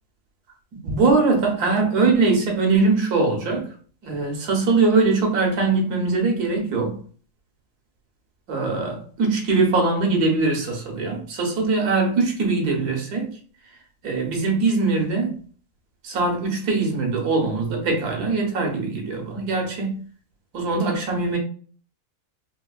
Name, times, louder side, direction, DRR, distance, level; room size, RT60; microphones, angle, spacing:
voice 1, 0.9-3.7 4.0-7.0 8.5-13.3 14.0-15.4 16.0-20.0 20.5-21.4, right 3 dB, 90° right, 1.5 m, -21 dB
4.5 x 2.4 x 2.3 m
omnidirectional pair, 1.6 m